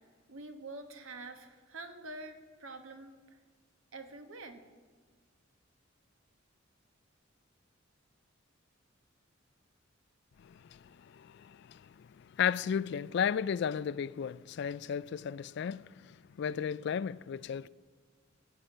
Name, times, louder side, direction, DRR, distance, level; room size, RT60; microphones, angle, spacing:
voice 1, 0.3-3.4 3.9-4.6, right 2 dB, 80° right, 1.3 m, -46 dB
voice 2, 10.4-11.8 12.2-15.8 16.4-17.7, left 7 dB, 55° left, 0.3 m, -34 dB
17.0 x 5.8 x 9.0 m
head